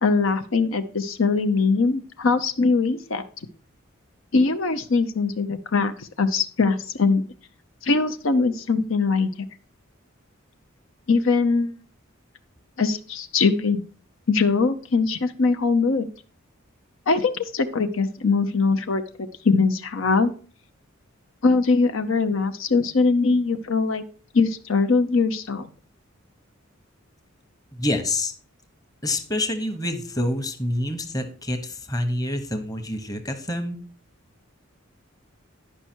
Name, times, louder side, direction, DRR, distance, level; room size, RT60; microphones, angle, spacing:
voice 1, 0.0-3.2 4.3-7.2 7.8-9.3 11.1-11.7 12.8-13.8 14.3-16.1 17.1-19.0 19.4-20.3 21.4-24.0 24.3-25.7, left 4 dB, 70° left, 8 dB, 0.7 m, -21 dB
voice 2, 27.7-28.3 29.0-33.8, left 1 dB, 20° left, 6 dB, 1.0 m, -27 dB
10.5 x 5.5 x 4.4 m, 0.41 s
head